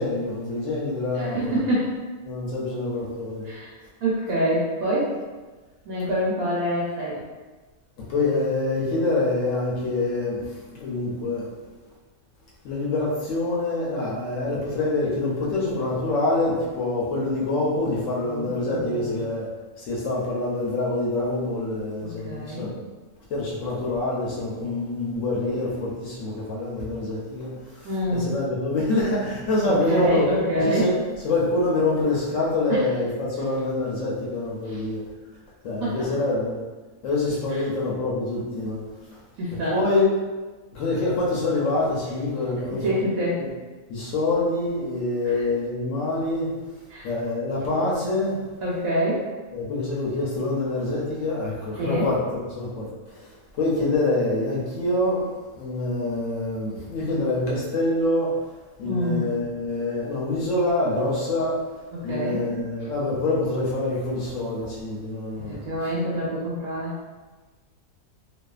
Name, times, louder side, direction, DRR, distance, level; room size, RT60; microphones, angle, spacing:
voice 1, 0.0-1.6 2.2-3.5 8.1-11.5 12.6-19.5 19.8-22.7 23.3-30.3 30.6-31.0 31.2-35.0 35.6-36.6 37.0-38.8 39.7-40.1 40.7-43.0 43.4-43.5 43.9-46.5 47.0-48.4 49.5-53.3 53.6-58.3 58.8-61.6 62.0-65.6, left 2 dB, 65° left, -5 dB, 0.9 m, -26 dB
voice 2, 1.1-2.0 3.4-3.7 4.0-5.2 5.9-7.2 18.2-19.2 22.0-22.7 27.8-28.2 29.6-30.9 32.7-32.8 34.6-34.8 35.8-36.1 37.5-37.6 39.4-39.8 42.6-43.4 45.2-45.4 46.9-47.1 48.6-49.3 51.8-52.1 58.8-59.3 61.9-62.4 65.4-66.9, equal, 75° right, -6 dB, 1.0 m, -26 dB
2.6 x 2.3 x 2.3 m, 1.3 s
omnidirectional pair, 1.6 m